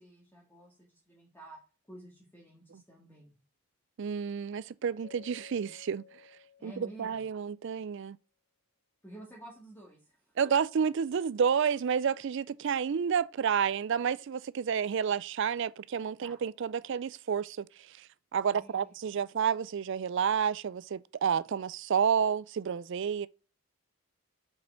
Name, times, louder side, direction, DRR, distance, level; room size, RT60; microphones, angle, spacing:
voice 1, 0.0-1.6 1.9-3.3 6.6-7.3 9.0-10.7 16.2-16.4 18.5-19.0, right 1 dB, 10° left, 1.9 m, -51 dB
voice 2, 4.0-6.0 6.6-8.2 10.4-17.7 18.0-18.1 18.3-23.3, right 7 dB, 55° right, 0.4 m, -30 dB
Keyboard (musical), 5.0-7.5, left 9 dB, 65° left, 0.9 m, -55 dB
6.6 x 6.0 x 4.4 m
head